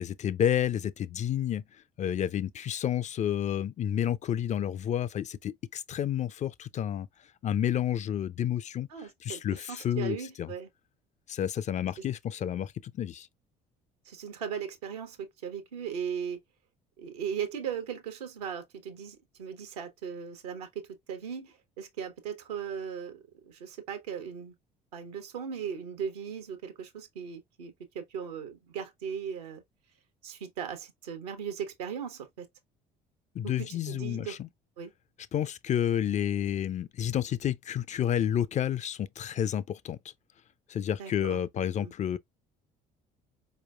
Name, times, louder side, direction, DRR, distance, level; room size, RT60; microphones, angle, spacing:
voice 1, 0.0-1.6 2.0-7.1 7.4-10.5 11.3-13.3 33.3-34.5 35.3-40.1 40.7-42.2, left 10 dB, 35° left, 0.4 m, -30 dB
voice 2, 8.9-10.7 14.1-16.4 17.0-24.5 24.9-29.6 30.2-32.5 33.4-34.4 34.8-34.9 41.0-41.4 41.8-41.9, right 7 dB, 85° right, 1.0 m, -38 dB
4.5 x 3.1 x 2.4 m
hypercardioid pair, 60°, 20 cm